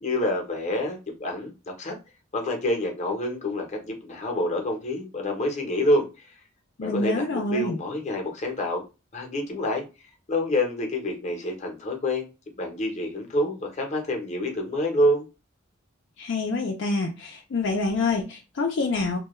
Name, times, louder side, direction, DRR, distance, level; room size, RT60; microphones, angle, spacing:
voice 1, 0.0-2.0 2.3-6.3 6.8-8.8 9.1-9.8 10.3-12.2 12.6-15.3, left 1 dB, 35° left, 0.7 m, -27 dB
voice 2, 6.8-7.8 16.2-19.2, left 3 dB, 65° left, 0.5 m, -27 dB
2.2 x 2.2 x 3.0 m
head